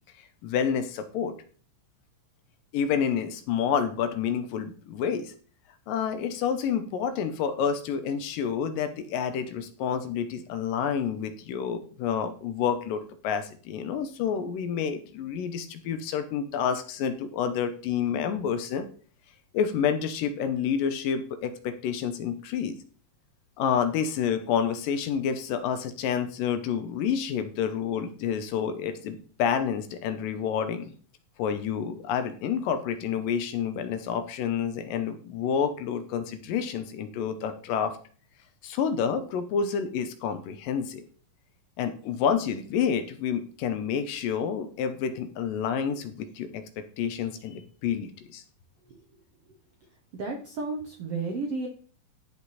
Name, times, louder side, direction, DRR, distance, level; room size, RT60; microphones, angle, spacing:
voice 1, 0.4-1.3 2.7-5.3 5.9-18.9 19.5-22.8 23.6-30.9 31.4-38.0 38.6-41.1 41.8-48.4, left 7 dB, 75° left, 9 dB, 2.5 m, -29 dB
voice 2, 50.1-51.7, right 3 dB, 70° right, 3 dB, 1.4 m, -32 dB
14.5 x 5.1 x 4.2 m, 0.43 s
omnidirectional pair, 4.2 m